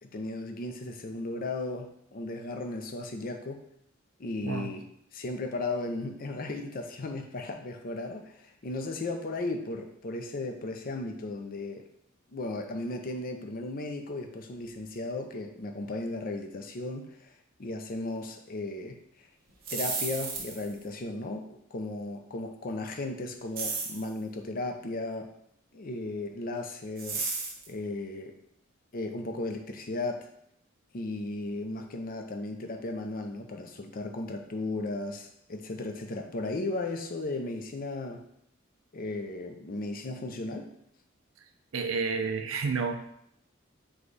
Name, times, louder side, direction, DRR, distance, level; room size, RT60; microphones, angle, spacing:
voice 1, 0.0-3.6 4.2-4.8 5.1-11.8 12.3-17.3 17.6-19.3 19.7-25.3 25.7-27.3 27.7-28.3 28.9-30.3 30.9-38.3 38.9-40.7, left 2 dB, 45° left, 4 dB, 0.5 m, -35 dB
voice 2, 4.4-4.7 41.4-41.5 41.7-43.0, right 5 dB, 75° right, 7 dB, 0.5 m, -30 dB
sound 1, 19.5-20.8 23.6-24.1 27.0-27.7, right 4 dB, 45° right, 1.2 m, -33 dB
4.9 x 2.3 x 3.9 m, 0.73 s
head